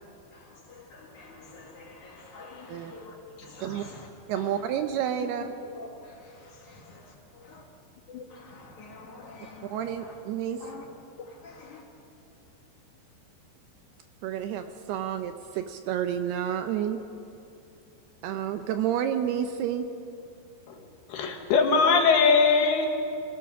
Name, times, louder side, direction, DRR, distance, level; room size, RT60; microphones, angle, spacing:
voice 1, 0.3-4.1 4.3-4.6 5.2-5.3 5.6-7.1 7.5-7.6 8.1-10.1 10.6-10.9 11.2-11.8, left 4 dB, 50° left, 0 dB, 2.8 m, -46 dB
voice 2, 4.3-5.5 9.6-10.6 14.2-17.0 18.2-19.9, right 9 dB, 80° right, 8 dB, 2.5 m, -30 dB
voice 3, 21.1-22.9, left 5 dB, 70° left, 3 dB, 3.1 m, -21 dB
25.5 x 17.5 x 5.9 m, 2.6 s
omnidirectional pair, 5.1 m